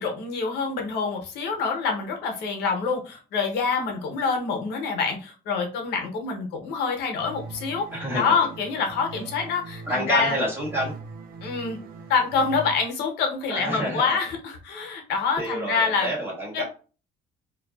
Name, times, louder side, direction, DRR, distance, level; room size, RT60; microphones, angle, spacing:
voice 1, 0.0-7.9 8.1-10.3 11.4-11.8 12.1-16.1 16.5-16.6, left 5 dB, 85° left, 2 dB, 0.7 m, -26 dB
sound 1, 7.2-12.7, right 3 dB, 60° right, 0.5 m, -41 dB
voice 2, 7.9-8.3 9.9-10.9 13.5-14.2 15.4-16.6, right 1 dB, 15° right, -4 dB, 1.5 m, -28 dB
2.5 x 2.3 x 2.3 m, 0.35 s
cardioid pair, 110°, 17 cm